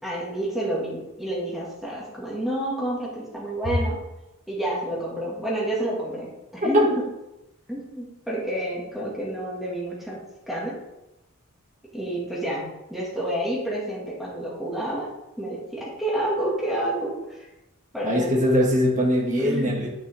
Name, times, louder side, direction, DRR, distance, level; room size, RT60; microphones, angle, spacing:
voice 1, 0.0-4.0 4.5-6.9 7.7-10.2 10.5-10.7 11.9-15.1 15.4-17.5 17.9-18.3 19.3-19.8, right 1 dB, ahead, -6 dB, 2.1 m, -29 dB
voice 2, 18.0-19.9, equal, 35° right, -2 dB, 2.0 m, -21 dB
9.2 x 6.9 x 3.6 m, 0.94 s
head